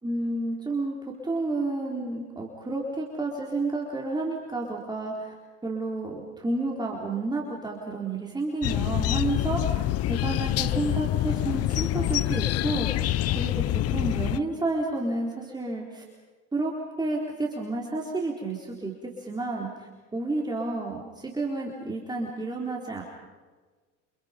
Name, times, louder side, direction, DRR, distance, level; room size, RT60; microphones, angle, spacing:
voice 1, 0.0-5.3 5.6-9.8 10.1-13.1 13.4-16.0 16.5-23.0, right 2 dB, 10° right, -2 dB, 4.1 m, -31 dB
sound 1, 8.6-14.4, left 14 dB, 40° left, 0.8 m, -26 dB
29.0 x 28.0 x 5.3 m, 1.4 s
supercardioid pair, 115°, 36 cm